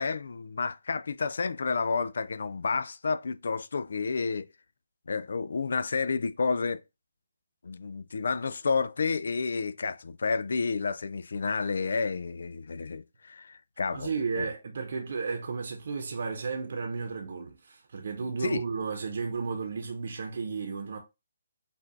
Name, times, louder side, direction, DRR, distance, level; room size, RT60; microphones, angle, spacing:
voice 1, 0.0-4.5 5.1-6.8 7.6-14.1 14.4-14.5 18.4-18.6, left 4 dB, 70° left, 0.4 m, -30 dB
voice 2, 13.9-21.0, right 4 dB, 60° right, 1.0 m, -33 dB
5.5 x 2.5 x 3.7 m
hypercardioid pair, 160°, 0 cm